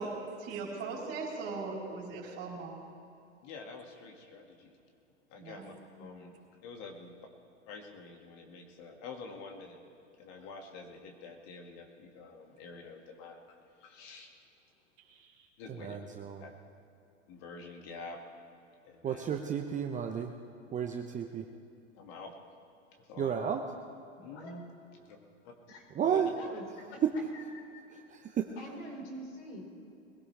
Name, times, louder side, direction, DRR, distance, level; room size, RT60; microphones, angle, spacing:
voice 1, 0.5-2.8 5.4-5.7 15.1-15.4, right 4 dB, 40° right, -3 dB, 4.3 m, -39 dB
voice 2, 3.4-4.8 5.3-6.3 6.6-7.1 7.7-9.8 10.2-14.3 15.6-16.0 16.4-16.5 17.3-18.2 18.8-19.3 21.9-22.3 23.0-23.5 24.2-24.6 25.0-25.2 25.4-25.5 26.0-26.3, left 4 dB, 50° left, 3 dB, 2.2 m, -47 dB
voice 3, 6.0-6.3 24.2-24.5 25.7-25.8 26.4-27.8 28.6-29.6, equal, 70° left, -1 dB, 4.7 m, -47 dB
voice 4, 15.8-16.4 19.0-20.3 20.7-21.4 23.2-23.6 26.0-26.3 28.4-28.5, right 8 dB, 20° right, 4 dB, 0.8 m, -32 dB
22.0 x 16.5 x 3.4 m, 2.6 s
hypercardioid pair, 100°, 36 cm